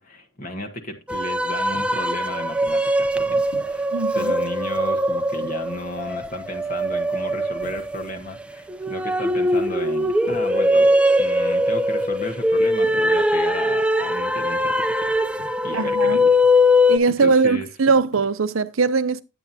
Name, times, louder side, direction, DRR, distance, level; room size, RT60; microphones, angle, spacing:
voice 1, 0.0-15.1 15.6-16.4 17.1-18.0, left 1 dB, 40° left, 1.3 m, -34 dB
sound 1, 1.1-17.0, left 1 dB, 5° right, 0.5 m, -21 dB
sound 2, 1.7-2.2 3.5-3.9 5.3-6.0 7.6-8.3 10.2-10.8 12.8-13.1 15.4-15.9 18.0-18.4, left 1 dB, 90° left, 2.6 m, -46 dB
voice 2, 3.9-4.3 15.7-16.2 16.9-19.2, right 4 dB, 90° right, 0.7 m, -20 dB
10.5 x 9.1 x 2.7 m
head